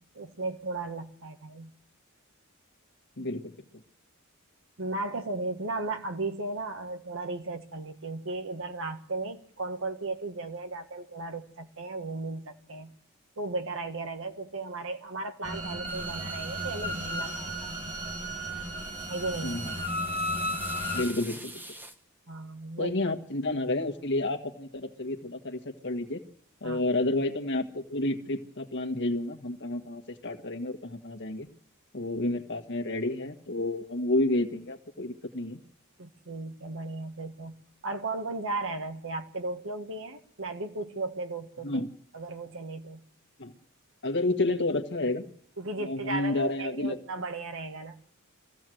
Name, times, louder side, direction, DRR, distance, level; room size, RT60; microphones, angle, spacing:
voice 1, 0.0-1.7 3.2-3.3 4.8-12.9 13.4-18.0 19.1-19.6 22.3-22.9 26.6-26.8 36.0-37.6 37.8-41.8 42.1-43.0 45.6-48.0, right 2 dB, 65° right, 7 dB, 1.5 m, -36 dB
voice 2, 3.2-3.5 19.4-19.7 20.9-21.6 22.8-26.2 26.6-31.5 31.9-35.6 41.6-41.9 43.4-43.5 44.0-45.2 45.8-47.0, left 2 dB, 55° left, 6 dB, 1.6 m, -30 dB
sound 1, 15.4-21.0, equal, 30° right, 2.4 m, -34 dB
sound 2, 15.9-22.0, right 1 dB, 10° right, 1.1 m, -47 dB
22.5 x 15.5 x 7.8 m, 0.71 s
head